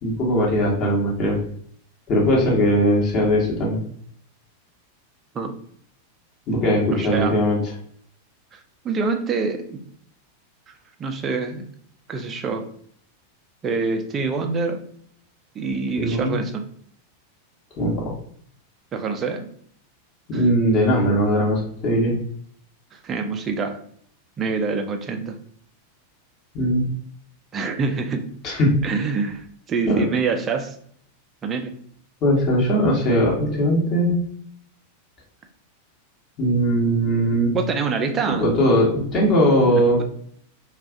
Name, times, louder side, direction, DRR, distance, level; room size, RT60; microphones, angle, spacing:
voice 1, 0.0-1.4 2.1-3.8 6.5-7.6 16.0-16.4 17.8-18.1 20.3-22.2 26.5-26.9 28.4-28.8 29.9-30.0 32.2-34.2 36.4-37.5 38.4-40.0, equal, 35° left, -3 dB, 1.0 m, -19 dB
voice 2, 6.9-7.3 8.5-8.6 8.8-9.8 10.7-10.8 11.0-11.6 12.1-12.7 13.6-14.8 15.5-16.6 18.9-19.5 20.3-20.4 22.9-23.8 24.4-25.3 27.5-28.3 28.8-30.8 31.4-31.7 37.5-38.5 39.7-40.0, right 4 dB, 25° right, 5 dB, 0.4 m, -26 dB
2.4 x 2.3 x 3.6 m, 0.62 s
figure-of-eight pair, 90°, 0 cm